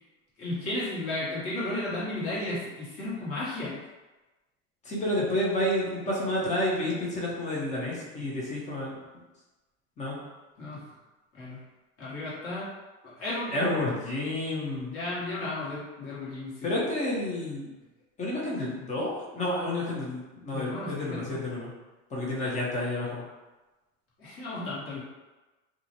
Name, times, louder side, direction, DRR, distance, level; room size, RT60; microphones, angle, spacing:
voice 1, 0.4-3.8 10.6-10.8 11.3-11.6 12.0-12.7 13.2-13.7 14.9-16.5 20.5-21.4 24.2-25.0, left 2 dB, 35° left, -8 dB, 1.1 m, -34 dB
voice 2, 4.8-9.0 10.0-10.2 13.5-15.0 16.6-17.7 18.2-21.7 22.1-23.2 24.9-25.0, left 1 dB, 20° left, -4 dB, 0.7 m, -30 dB
2.4 x 2.1 x 2.8 m, 1.1 s
supercardioid pair, 120°, 39 cm